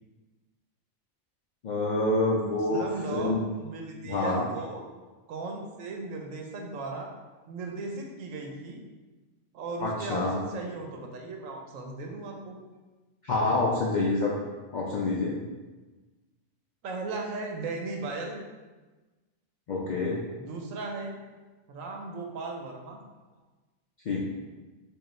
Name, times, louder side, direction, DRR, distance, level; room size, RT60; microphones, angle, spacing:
voice 1, 1.6-2.9 3.1-3.4 4.0-4.5 9.8-10.4 13.2-14.4 14.7-15.3 19.7-20.2 24.1-24.2, left 2 dB, 75° left, -5 dB, 0.4 m, -27 dB
voice 2, 2.7-3.3 3.6-4.8 5.3-7.1 7.5-8.8 9.5-12.6 16.8-18.4 20.4-21.1 21.7-23.0, right 3 dB, 85° right, 2 dB, 1.0 m, -36 dB
4.6 x 2.3 x 3.1 m, 1.2 s
omnidirectional pair, 1.3 m